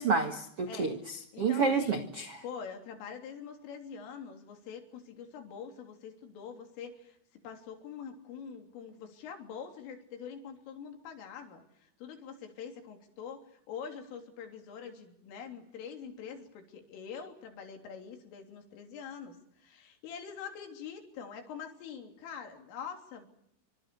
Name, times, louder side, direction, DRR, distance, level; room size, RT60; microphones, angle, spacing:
voice 1, 0.0-2.2, right 4 dB, 85° right, 7 dB, 1.3 m, -29 dB
voice 2, 1.3-2.1 2.4-7.2 7.4-13.4 13.7-23.3, left 7 dB, 85° left, 5 dB, 5.8 m, -44 dB
26.0 x 25.5 x 7.0 m, 0.72 s
omnidirectional pair, 5.6 m